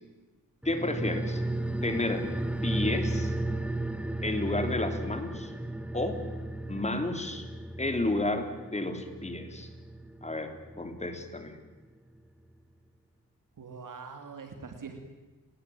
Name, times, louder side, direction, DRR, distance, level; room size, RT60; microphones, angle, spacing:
sound 1, 0.6-11.5 11.8-11.9, right 1 dB, 5° right, 1.2 m, -35 dB
voice 1, 0.7-1.4 1.8-2.3 2.6-3.3 4.2-5.5 5.9-6.2 6.7-7.5 7.8-9.7 10.2-11.6, left 2 dB, 20° left, 7 dB, 3.5 m, -31 dB
voice 2, 13.6-15.1, right 5 dB, 60° right, 5 dB, 3.2 m, -43 dB
30.0 x 20.5 x 8.8 m, 1.2 s
wide cardioid pair, 110°, 35 cm